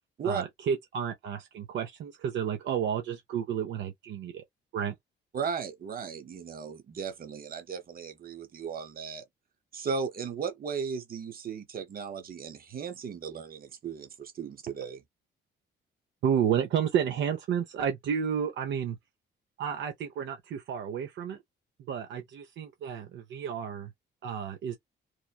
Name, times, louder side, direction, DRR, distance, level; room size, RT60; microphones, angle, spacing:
voice 1, 0.2-4.4 4.7-4.9 16.2-19.0 19.6-21.4 21.9-23.9 24.2-24.8, right 8 dB, 70° right, 0.6 m, -31 dB
voice 2, 5.3-9.2 9.7-15.0, right 6 dB, 50° right, 0.9 m, -36 dB
3.1 x 2.1 x 2.2 m
cardioid pair, 90°, 20 cm